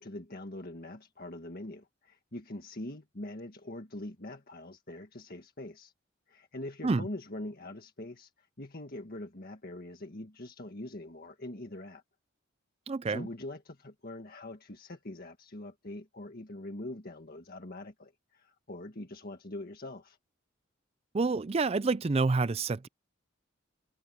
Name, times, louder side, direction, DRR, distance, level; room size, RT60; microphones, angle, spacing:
voice 1, 0.0-5.9 6.3-12.0 13.1-20.2, left 1 dB, 45° left, 1.8 m, -43 dB
voice 2, 12.9-13.3 21.1-22.9, right 3 dB, 30° right, 0.4 m, -28 dB
head